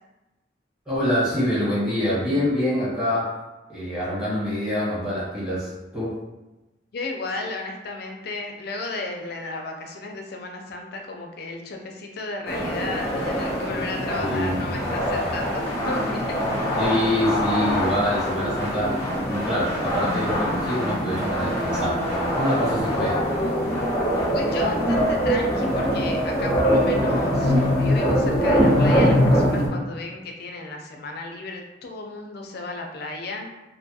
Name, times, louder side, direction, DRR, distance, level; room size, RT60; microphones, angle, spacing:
voice 1, 0.9-3.4 3.7-6.2 14.1-15.2 16.8-23.2, equal, 5° right, -10 dB, 1.2 m, -26 dB
voice 2, 6.9-16.4 24.3-33.5, left 2 dB, 60° left, 2 dB, 0.4 m, -34 dB
sound 1, 12.5-29.7, equal, 15° left, 0.7 m, -23 dB
2.6 x 2.2 x 2.7 m, 1.1 s
head